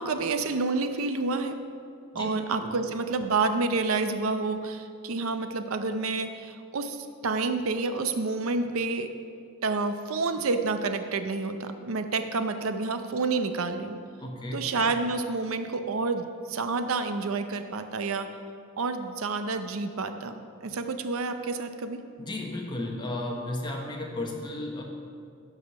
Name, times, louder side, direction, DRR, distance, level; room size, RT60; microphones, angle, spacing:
voice 1, 0.0-1.6 2.1-9.1 9.6-14.0 14.5-18.3 18.8-22.0, right 3 dB, 75° right, 9 dB, 0.6 m, -29 dB
voice 2, 14.2-14.7 22.2-24.8, left 1 dB, 20° left, 1 dB, 1.1 m, -34 dB
12.0 x 4.9 x 5.6 m, 2.4 s
head